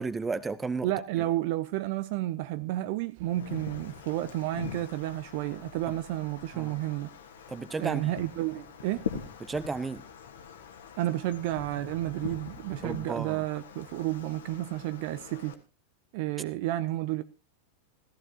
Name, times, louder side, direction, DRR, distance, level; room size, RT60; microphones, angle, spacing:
voice 1, 0.0-0.9 5.9-6.0 6.5-6.8 7.5-8.1 9.4-10.0 12.8-13.4, right 4 dB, 15° right, 0.8 m, -33 dB
voice 2, 0.8-7.1 7.8-9.1 11.0-15.5 16.1-17.2, right 15 dB, 50° right, 0.6 m, -31 dB
Wind, 3.2-15.5, left 7 dB, 65° left, 1.5 m, -43 dB
16.5 x 14.0 x 2.9 m
figure-of-eight pair, 90°, 0 cm